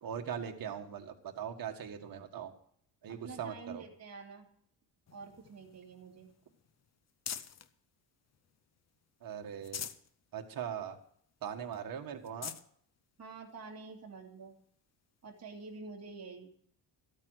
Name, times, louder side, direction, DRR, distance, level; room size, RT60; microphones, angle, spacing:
voice 1, 0.0-2.5 3.0-3.8 9.2-9.8 10.3-11.0 11.4-12.5, right 8 dB, 50° right, 4 dB, 1.7 m, -40 dB
voice 2, 3.1-4.5 5.1-6.3 13.2-14.5 15.2-16.5, right 4 dB, 35° right, 0 dB, 2.4 m, -48 dB
sound 1, 5.1-7.7 8.2-9.0 9.4-10.1 10.6-10.7 11.0-11.1 11.7-11.8 12.2-12.7 13.5-13.6 15.4-15.5, left 8 dB, 40° left, 0.7 m, -45 dB
13.5 x 8.8 x 6.4 m, 0.62 s
cardioid pair, 145°, 43 cm